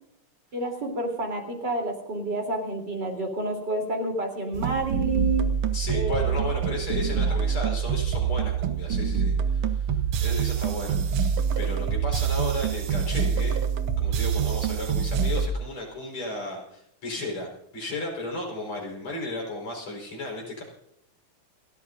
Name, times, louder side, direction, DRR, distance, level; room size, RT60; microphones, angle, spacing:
voice 1, 0.5-5.4 5.9-6.4 7.3-7.4, right 2 dB, 50° right, 2 dB, 4.1 m, -29 dB
sound 1, 4.5-15.5, right 7 dB, 90° right, 2.0 m, -26 dB
voice 2, 5.7-13.6 14.0-20.6, left 2 dB, 85° left, -1 dB, 5.7 m, -34 dB
29.0 x 13.5 x 2.6 m, 0.77 s
omnidirectional pair, 2.4 m